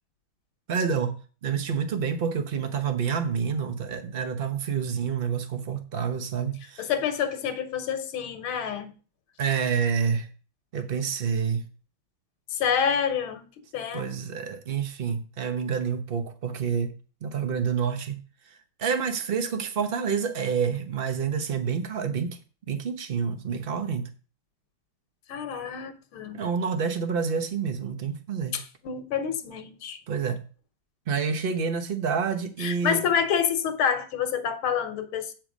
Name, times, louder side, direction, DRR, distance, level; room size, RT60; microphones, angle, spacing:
voice 1, 0.7-1.2 1.4-6.9 9.4-10.3 10.7-11.7 13.9-16.9 17.2-18.2 18.5-22.4 22.7-24.1 26.3-28.6 30.1-30.4 31.1-33.0, right 6 dB, 45° right, 0.8 m, -28 dB
voice 2, 6.8-8.9 12.5-14.1 25.3-26.4 28.5-30.0 32.6-35.3, left 7 dB, 85° left, 1.9 m, -28 dB
8.4 x 6.3 x 5.0 m
omnidirectional pair, 2.2 m